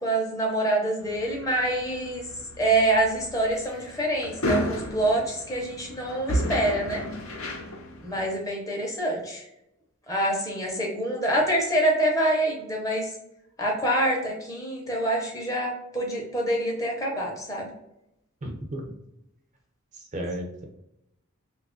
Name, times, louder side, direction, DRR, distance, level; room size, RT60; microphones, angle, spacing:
voice 1, 0.0-2.2 2.6-7.0 8.0-9.4 10.1-13.1 13.6-17.7, right 1 dB, 15° left, -1 dB, 0.7 m, -26 dB
sound 1, 1.0-8.3, left 1 dB, 75° left, 0.7 m, -33 dB
voice 2, 18.4-18.9 19.9-20.7, right 1 dB, 35° right, 2 dB, 0.5 m, -34 dB
2.8 x 2.4 x 3.6 m, 0.84 s
head